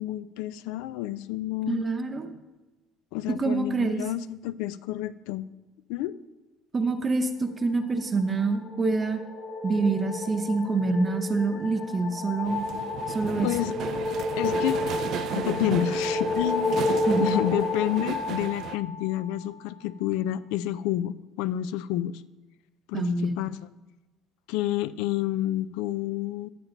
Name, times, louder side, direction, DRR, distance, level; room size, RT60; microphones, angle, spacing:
voice 1, 0.0-1.8 3.1-5.5 5.9-6.2 13.4-13.7 14.4-14.8 15.4-16.8 17.2-22.2 22.9-23.6 24.5-26.5, left 13 dB, 85° left, 16 dB, 0.4 m, -29 dB
voice 2, 1.7-2.3 3.3-4.0 6.7-9.2 9.6-12.7 13.1-13.5 17.1-17.4 22.9-23.4, right 3 dB, 25° right, 5 dB, 0.8 m, -26 dB
sound 1, 8.2-19.6, left 2 dB, 30° left, 1.4 m, -31 dB
sound 2, 12.4-18.8, right 10 dB, 55° right, 0.3 m, -35 dB
10.5 x 8.8 x 3.9 m, 1.1 s
cardioid pair, 125°, 0 cm